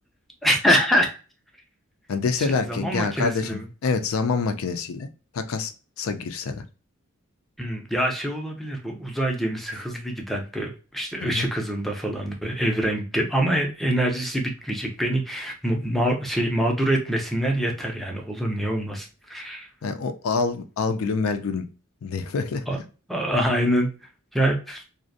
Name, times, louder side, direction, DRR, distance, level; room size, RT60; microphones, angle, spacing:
voice 1, 0.4-1.1 2.4-3.6 7.6-19.7 22.7-22.8 23.1-23.9 24.3-24.8, equal, ahead, 2 dB, 0.4 m, -25 dB
voice 2, 2.1-5.1 5.3-5.7 6.0-6.6 11.2-11.5 19.8-21.7 22.0-22.7, left 4 dB, 75° left, 9 dB, 0.4 m, -26 dB
2.5 x 2.0 x 2.5 m, 0.34 s
head